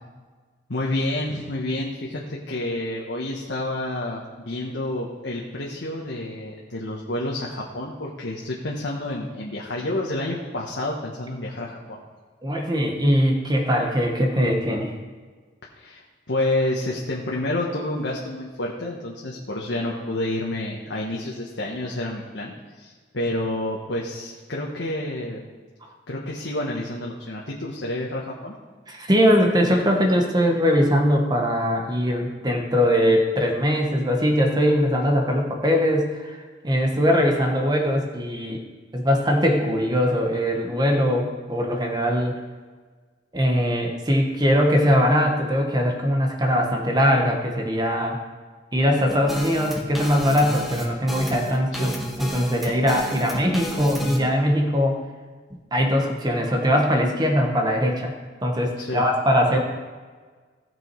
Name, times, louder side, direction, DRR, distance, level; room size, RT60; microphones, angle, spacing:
voice 1, 0.7-12.0 15.7-25.4 26.1-28.5 51.8-51.9 58.8-59.0, left 1 dB, 85° left, -3 dB, 1.4 m, -29 dB
voice 2, 12.4-14.9 28.9-38.6 38.9-42.4 43.3-48.2 48.7-51.9 52.2-55.0 55.7-58.1 58.4-59.6, equal, 25° right, 2 dB, 1.3 m, -21 dB
sound 1, 49.1-54.2, equal, ahead, 1.4 m, -31 dB
16.5 x 6.2 x 4.7 m, 1.5 s
head